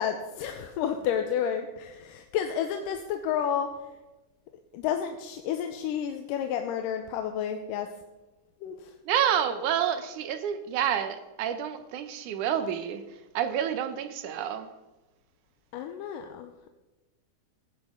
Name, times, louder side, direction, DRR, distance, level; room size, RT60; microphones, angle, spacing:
voice 1, 0.0-3.7 4.7-7.9 8.6-8.8 15.7-16.7, left 8 dB, 90° left, 6 dB, 2.4 m, -31 dB
voice 2, 9.1-13.0 13.3-14.7, right 9 dB, 75° right, 9 dB, 2.2 m, -28 dB
16.0 x 10.0 x 3.7 m, 1.1 s
omnidirectional pair, 3.8 m